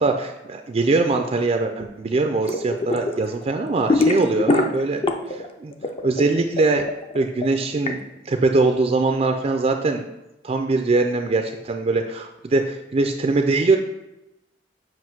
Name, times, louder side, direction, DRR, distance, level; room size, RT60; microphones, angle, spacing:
voice 1, 0.0-5.0 5.3-5.7 6.0-6.9 7.1-8.0 8.3-10.1 10.4-13.8, right 3 dB, 35° right, 5 dB, 0.4 m, -22 dB
sound 1, 2.4-3.1 3.4-5.5 5.7-7.9, left 2 dB, 30° left, 0.5 m, -22 dB
7.6 x 2.6 x 5.8 m, 0.94 s
head